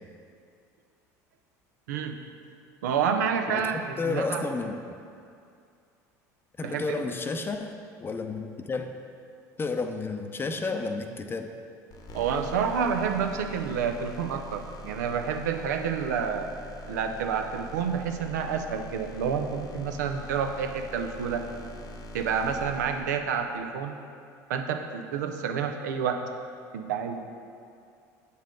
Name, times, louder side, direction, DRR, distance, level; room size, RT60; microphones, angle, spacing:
voice 1, 1.9-2.2 2.8-4.4 6.6-7.0 12.1-16.5 16.9-21.4 22.1-24.0 24.5-26.3 26.7-27.2, right 6 dB, 85° right, 6 dB, 0.5 m, -29 dB
voice 2, 4.0-4.8 6.6-8.9 9.6-11.5, left 3 dB, 25° left, 6 dB, 0.6 m, -31 dB
sound 1, 11.9-23.6, left 1 dB, 45° left, 0.9 m, -43 dB
7.5 x 5.5 x 3.7 m, 2.4 s
hypercardioid pair, 80°, 9 cm